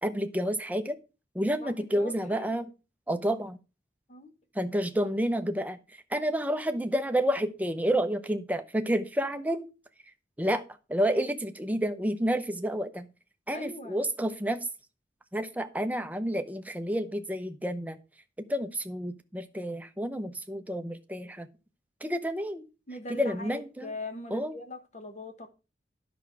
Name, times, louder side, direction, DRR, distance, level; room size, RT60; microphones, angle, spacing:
voice 1, 0.0-1.0 1.3-2.7 3.1-3.6 4.5-9.7 10.4-10.6 10.9-13.1 13.5-14.7 15.3-18.0 18.5-21.5 22.0-22.6 23.1-23.9 24.3-24.6, equal, 10° right, 8 dB, 0.7 m, -30 dB
voice 2, 1.5-2.6 4.1-4.3 13.5-14.0 22.9-25.5, left 2 dB, 40° left, 7 dB, 1.2 m, -41 dB
10.5 x 6.1 x 4.6 m, 0.31 s
head